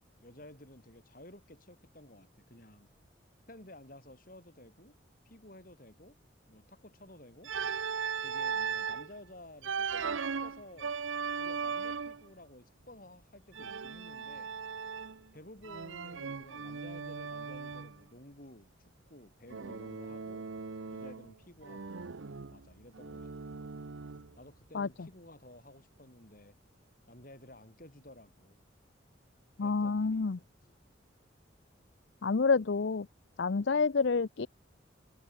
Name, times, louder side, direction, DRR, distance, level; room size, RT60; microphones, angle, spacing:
voice 1, 0.0-2.9 3.5-5.0 5.2-6.2 6.5-7.5 8.2-10.9 11.4-14.5 15.3-20.5 20.9-22.0 22.5-23.3 24.4-26.6 27.1-28.6 29.6-30.8, left 1 dB, 45° left, 6.3 m, -54 dB
Organ, 7.4-9.1 9.6-12.3 13.5-15.3 15.6-18.0 19.5-21.3 21.6-24.4, right 6 dB, 85° right, 0.8 m, -38 dB
voice 2, 29.6-30.4 32.2-33.1 33.4-34.5, left 4 dB, 70° left, 0.6 m, -28 dB
head